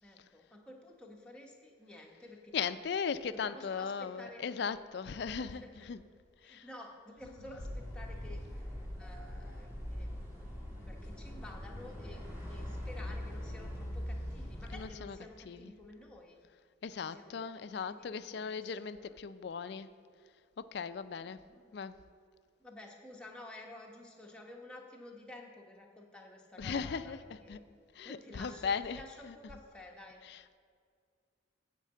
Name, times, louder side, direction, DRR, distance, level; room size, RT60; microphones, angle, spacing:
voice 1, 0.0-2.7 3.3-4.4 5.3-5.9 6.4-10.1 10.8-12.2 12.5-16.4 17.0-19.2 21.2-21.8 22.6-27.7 28.0-30.2, left 1 dB, 5° left, -1 dB, 0.9 m, -52 dB
voice 2, 2.5-6.0 6.4-6.6 14.7-15.2 15.5-15.7 16.8-19.9 20.6-21.4 21.7-22.0 26.6-27.2 27.5-27.6 28.0-29.0 29.2-29.3 30.3-30.6, left 6 dB, 55° left, 13 dB, 0.3 m, -38 dB
sound 1, 7.6-14.9, equal, 10° right, 1.5 m, -42 dB
9.0 x 4.6 x 7.5 m, 2.2 s
head